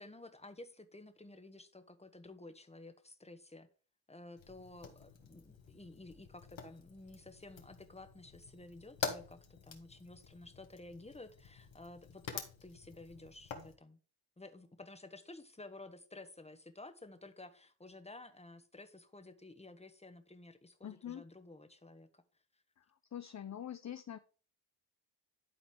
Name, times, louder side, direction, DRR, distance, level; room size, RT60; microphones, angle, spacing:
voice 1, 0.0-3.7 4.1-14.0 14.4-22.2, left 2 dB, 15° left, 1.4 m, -53 dB
Fire, 4.4-13.7, left 6 dB, 65° left, 1.9 m, -47 dB
voice 2, 20.8-21.2 22.8-22.9 23.1-24.2, left 10 dB, 35° left, 0.6 m, -44 dB
11.5 x 4.0 x 4.9 m
cardioid pair, 60°, 49 cm